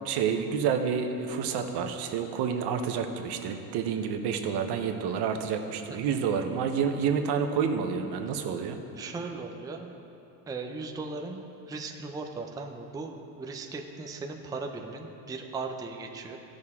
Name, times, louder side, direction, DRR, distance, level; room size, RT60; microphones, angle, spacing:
voice 1, 0.0-8.8, right 6 dB, 70° right, 6 dB, 1.0 m, -29 dB
voice 2, 5.9-6.2 9.0-9.9 10.5-16.4, right 3 dB, 10° right, 3 dB, 0.4 m, -38 dB
15.5 x 6.4 x 3.6 m, 2.8 s
cardioid pair, 135°, 43 cm